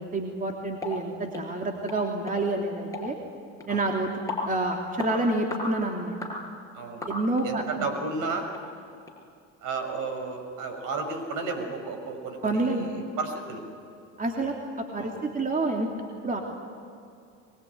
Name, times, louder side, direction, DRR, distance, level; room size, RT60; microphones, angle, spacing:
voice 1, 0.0-3.2 3.7-4.1 4.4-6.2 7.1-7.9 12.4-12.9 14.2-15.9 16.2-16.4, right 2 dB, 20° right, 1 dB, 3.2 m, -28 dB
sound 1, 0.8-1.0 1.3-1.5 1.9-2.0 2.3-2.4 2.9-3.1 3.6-3.7 4.3-4.5 5.0-5.1 5.5-5.7 6.2-6.4 7.0-7.5 7.9-8.0 8.5-8.6 9.1-9.2, left 3 dB, 10° left, 6.7 m, -34 dB
voice 2, 6.7-7.1 7.4-8.5 9.6-13.6 15.0-15.2, right 3 dB, 55° right, 5 dB, 6.1 m, -33 dB
24.0 x 22.5 x 9.7 m, 2.5 s
hypercardioid pair, 90°, 37 cm